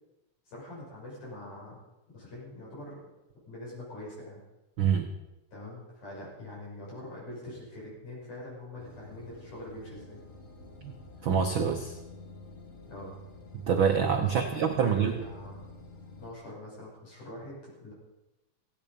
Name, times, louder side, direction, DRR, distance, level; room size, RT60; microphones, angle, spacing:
voice 1, 0.5-1.8 2.1-3.0 3.5-4.4 5.5-10.2 12.9-13.2 14.3-15.7 16.2-17.9, left 1 dB, 65° left, -6 dB, 8.3 m, -43 dB
voice 2, 4.8-5.1 10.8-10.9 11.2-12.0 13.7-15.1, right 7 dB, 90° right, 4 dB, 1.0 m, -26 dB
sound 1, 8.8-16.3, left 3 dB, 35° left, 1.3 m, -49 dB
17.0 x 15.5 x 5.3 m, 0.99 s
omnidirectional pair, 3.8 m